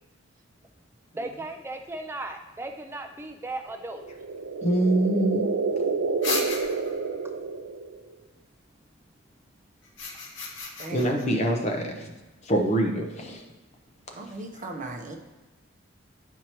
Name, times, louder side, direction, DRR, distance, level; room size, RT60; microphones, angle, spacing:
voice 1, 1.1-4.0, right 2 dB, 10° right, 4 dB, 0.3 m, -36 dB
sound 1, 3.9-8.1, right 4 dB, 80° right, 0.5 m, -29 dB
voice 2, 4.6-5.5 10.9-12.1 12.4-13.4 14.5-14.6, right 1 dB, 30° left, 3 dB, 0.7 m, -25 dB
sound 2, 6.2-7.1 9.8-11.3, left 3 dB, 60° left, 0.9 m, -33 dB
voice 3, 10.8-11.2 14.1-15.1, right 2 dB, 35° right, 2 dB, 0.7 m, -37 dB
9.2 x 4.5 x 3.0 m, 1.2 s
head